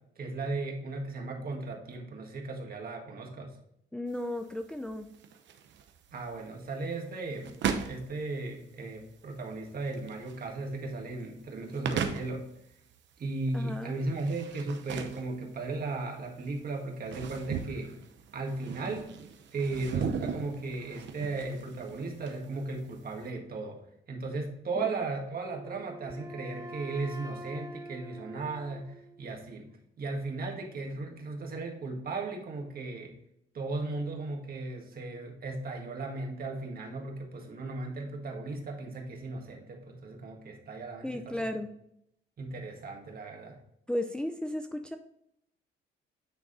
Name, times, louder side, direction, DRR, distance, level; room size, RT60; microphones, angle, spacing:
voice 1, 0.2-3.5 6.1-7.5 7.9-12.5 13.2-17.9 18.3-19.1 19.5-23.8 24.1-29.7 30.0-33.1 33.5-41.5 42.4-43.6, right 3 dB, 50° right, 1 dB, 1.8 m, -36 dB
voice 2, 3.9-5.1 13.5-13.9 24.8-24.9 41.0-41.7 43.9-45.0, left 1 dB, 5° left, 5 dB, 0.5 m, -34 dB
sound 1, 4.1-23.3, right 7 dB, 65° right, 0.8 m, -39 dB
Wind instrument woodwind instrument, 25.4-29.4, equal, 20° right, 0.9 m, -45 dB
9.2 x 3.5 x 4.0 m, 0.77 s
cardioid pair, 90°, 20 cm